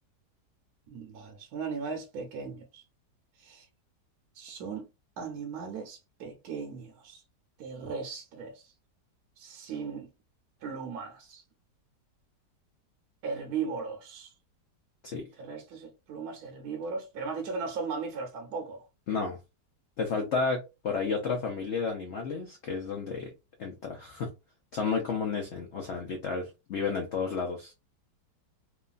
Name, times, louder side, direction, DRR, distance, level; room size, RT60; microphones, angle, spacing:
voice 1, 0.9-2.8 3.4-3.7 4.3-4.9 5.2-7.2 7.6-8.7 9.4-10.1 10.6-11.4 13.2-14.3 15.4-18.9, right 5 dB, 70° right, 1.1 m, -37 dB
voice 2, 19.1-19.4 20.0-23.3 23.6-24.3 24.7-27.7, left 5 dB, 85° left, 0.6 m, -32 dB
3.0 x 2.3 x 2.3 m
omnidirectional pair, 1.9 m